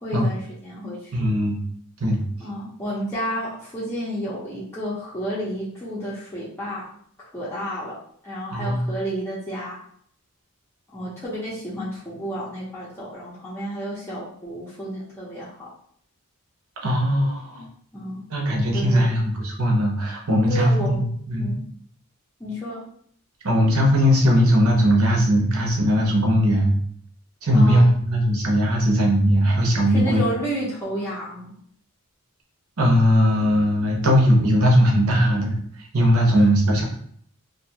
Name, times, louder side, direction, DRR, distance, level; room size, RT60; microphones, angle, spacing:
voice 1, 0.0-1.1 2.4-6.8 7.3-8.0 8.2-9.8 10.9-15.7 17.9-18.2 18.7-19.1 20.5-21.0 21.4-21.6 22.4-22.8 27.5-27.9 29.9-31.5 36.3-36.5, equal, 10° left, -9 dB, 0.5 m, -31 dB
voice 2, 1.1-1.6 2.0-2.2 8.5-8.9 16.8-17.7 18.3-21.5 23.4-26.8 27.4-30.2 32.8-35.6 35.9-36.8, equal, 85° right, 0 dB, 0.7 m, -19 dB
2.5 x 2.3 x 2.7 m, 0.62 s
head